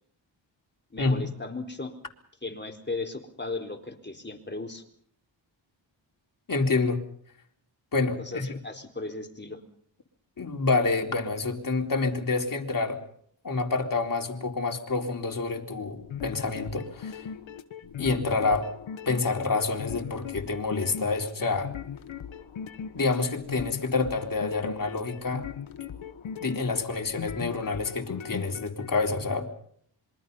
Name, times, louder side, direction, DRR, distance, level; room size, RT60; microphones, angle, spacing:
voice 1, 0.9-1.9 2.4-4.8 8.2-9.6, left 3 dB, 25° left, 4 dB, 4.2 m, -36 dB
voice 2, 6.5-7.0 7.9-8.6 10.4-13.0 13.4-17.3 18.0-18.7 19.1-21.7 22.9-25.5 26.4-29.5, left 3 dB, 45° left, 2 dB, 4.0 m, -28 dB
sound 1, 16.0-28.9, left 8 dB, 80° left, 1.6 m, -39 dB
26.5 x 23.0 x 5.6 m, 0.64 s
cardioid pair, 70°, 46 cm